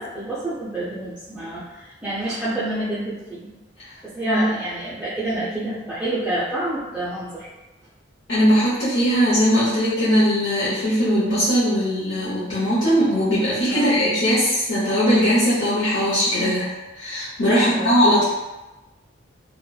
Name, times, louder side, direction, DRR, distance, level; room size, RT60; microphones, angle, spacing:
voice 1, 0.0-3.5 4.0-7.5 13.7-14.0 17.5-18.0, right 1 dB, 5° right, -11 dB, 0.3 m, -28 dB
voice 2, 8.3-16.7 16.9-18.3, equal, 70° left, -11 dB, 0.8 m, -19 dB
2.8 x 2.1 x 2.3 m, 1.1 s
head